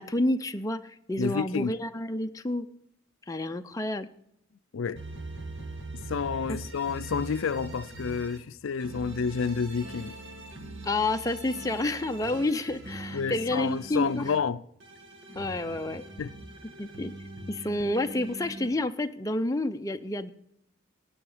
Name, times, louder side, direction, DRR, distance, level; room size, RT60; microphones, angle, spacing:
voice 1, 0.0-2.6 3.3-4.1 10.8-14.3 15.4-16.0 16.8-17.1 17.5-20.3, left 1 dB, 15° left, 0.6 m, -29 dB
voice 2, 1.2-1.7 4.7-5.0 6.1-10.2 13.1-14.6 16.2-16.4, left 6 dB, 75° left, 0.4 m, -30 dB
sound 1, 5.0-8.4 8.8-14.4 14.8-18.7, right 2 dB, 60° right, 2.0 m, -42 dB
16.0 x 9.3 x 5.0 m
head